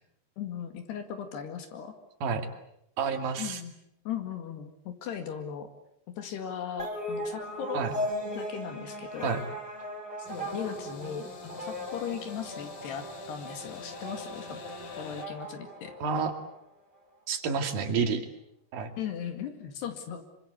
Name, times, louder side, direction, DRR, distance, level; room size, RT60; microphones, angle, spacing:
voice 1, 0.4-1.9 3.4-3.7 4.1-5.7 6.2-7.8 8.4-9.3 10.2-14.6 15.0-15.9 19.0-20.2, left 8 dB, 75° left, 6 dB, 4.1 m, -38 dB
voice 2, 3.0-3.6 7.7-7.9 9.2-9.4 16.0-16.3 17.3-18.2 18.7-18.9, right 5 dB, 60° right, 6 dB, 4.1 m, -29 dB
sound 1, 6.8-16.6, equal, 5° left, 5.2 m, -38 dB
sound 2, 10.3-15.3, left 5 dB, 55° left, 3.5 m, -46 dB
26.5 x 25.0 x 8.1 m, 0.76 s
omnidirectional pair, 4.9 m